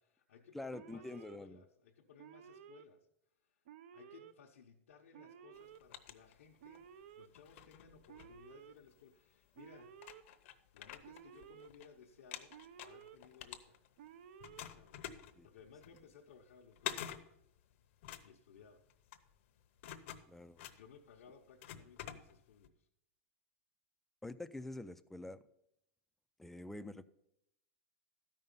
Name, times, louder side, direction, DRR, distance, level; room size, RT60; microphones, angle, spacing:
voice 1, 0.0-3.1 3.4-3.6 3.9-10.0 10.7-13.8 14.5-15.0 15.4-17.3 18.2-18.8 20.7-22.9, left 6 dB, 85° left, -2 dB, 0.9 m, -61 dB
voice 2, 0.5-1.6 15.4-15.5 20.3-20.6 24.2-25.4 26.4-27.0, left 2 dB, 5° left, 10 dB, 0.3 m, -46 dB
Alarm, 0.7-1.4 2.2-2.8 3.6-4.3 5.1-5.8 6.6-7.3 8.1-8.7 9.5-10.2 11.0-11.7 12.5-13.2 14.0-14.6, right 9 dB, 70° right, 0.6 m, -55 dB
sound 1, 5.5-6.9 7.3-9.0 9.6-9.7 10.0-11.9 12.1-14.1 14.4-22.7, left 11 dB, 60° left, 0.8 m, -49 dB
12.5 x 5.5 x 5.4 m, 0.80 s
supercardioid pair, 140°, 7 cm